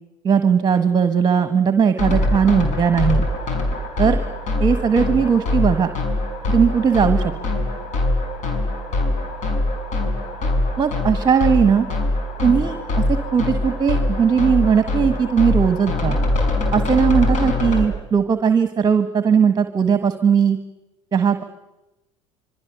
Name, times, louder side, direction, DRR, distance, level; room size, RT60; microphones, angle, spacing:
voice 1, 0.2-3.3 4.0-4.2 4.6-5.9 6.5-7.3 10.8-11.9 12.4-12.8 13.1-16.2 16.7-20.6 21.1-21.4, right 6 dB, 25° right, 9 dB, 1.4 m, -18 dB
sound 1, 2.0-17.8, left 2 dB, 50° left, 5.6 m, -23 dB
26.5 x 24.0 x 6.8 m, 0.99 s
hypercardioid pair, 70°, 16 cm